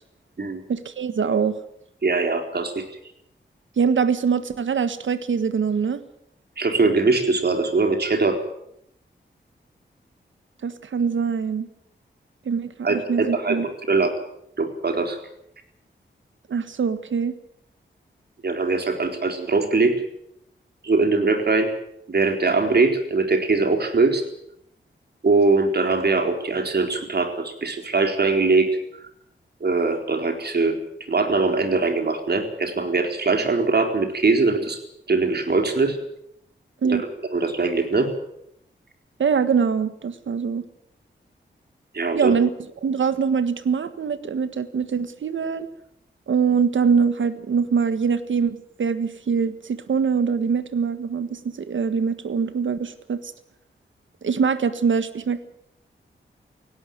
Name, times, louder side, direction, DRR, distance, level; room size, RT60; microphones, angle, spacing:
voice 1, 0.7-1.6 3.8-6.0 10.6-11.7 12.4-13.6 16.5-17.3 36.8-37.0 39.2-40.6 42.1-42.5 42.8-45.7 46.3-53.3 54.2-55.4, right 6 dB, 80° right, 12 dB, 1.5 m, -23 dB
voice 2, 2.0-2.8 6.6-8.4 12.8-14.1 14.6-15.2 18.4-20.0 20.8-21.7 22.1-24.2 25.2-28.7 29.6-30.8 31.1-34.8 35.1-36.0 36.8-37.0 37.3-38.1 41.9-42.3, right 3 dB, 55° right, 5 dB, 4.2 m, -21 dB
18.0 x 17.0 x 9.2 m, 0.76 s
cardioid pair, 65°, 20 cm